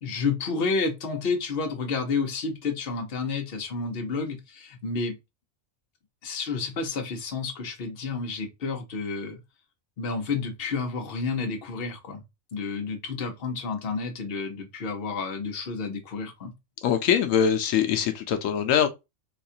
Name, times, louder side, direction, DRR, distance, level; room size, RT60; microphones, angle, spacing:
voice 1, 0.0-5.2 6.2-9.4 10.0-12.2 12.5-16.5, left 4 dB, 50° left, 1.0 m, -30 dB
voice 2, 16.8-18.9, left 8 dB, 85° left, 1.0 m, -23 dB
4.1 x 2.3 x 2.6 m
omnidirectional pair, 1.3 m